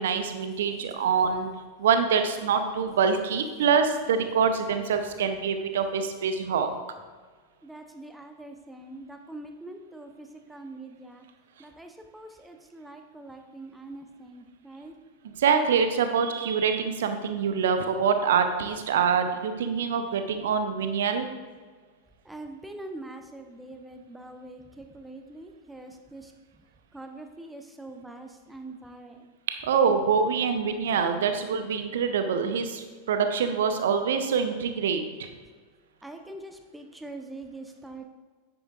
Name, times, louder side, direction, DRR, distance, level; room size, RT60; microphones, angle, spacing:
voice 1, 0.0-1.5 1.8-6.7 15.2-21.3 29.6-35.3, right 6 dB, 60° right, 8 dB, 0.7 m, -25 dB
voice 2, 7.6-11.2 11.6-14.9 22.2-26.3 26.9-29.3 36.0-38.0, right 2 dB, 5° right, 5 dB, 0.7 m, -43 dB
9.7 x 7.8 x 2.5 m, 1.5 s
figure-of-eight pair, 90°, 0 cm